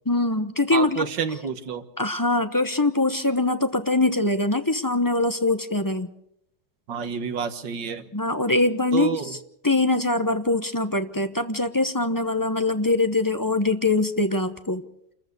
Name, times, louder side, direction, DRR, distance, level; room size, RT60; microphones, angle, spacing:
voice 1, 0.1-1.0 2.0-6.1 8.1-9.2 9.6-14.8, left 2 dB, 20° left, 9 dB, 0.5 m, -23 dB
voice 2, 0.7-1.8 6.9-8.1 8.9-9.4, right 6 dB, 80° right, 9 dB, 2.1 m, -29 dB
28.5 x 14.5 x 6.7 m, 0.76 s
omnidirectional pair, 1.9 m